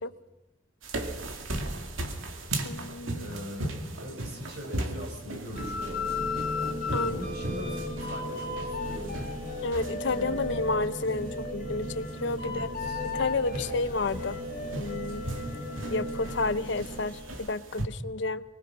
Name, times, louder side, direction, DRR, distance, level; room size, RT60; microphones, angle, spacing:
sound 1, 0.8-17.8, right 1 dB, 80° right, 2.2 m, -38 dB
voice 1, 1.6-2.0 3.1-6.0 7.0-9.2 10.1-10.4 12.4-13.0, equal, 55° right, 2 dB, 6.2 m, -41 dB
voice 2, 2.6-3.3 6.9-7.2 9.6-12.7 13.1-14.4 14.8-15.3 15.9-18.4, left 3 dB, 60° left, 12 dB, 0.7 m, -31 dB
sound 2, 5.5-17.5, equal, 35° right, 8.0 m, -37 dB
sound 3, 5.6-10.8 11.2-16.5, left 5 dB, 45° left, 2.3 m, -37 dB
24.5 x 20.0 x 6.1 m, 1.0 s
head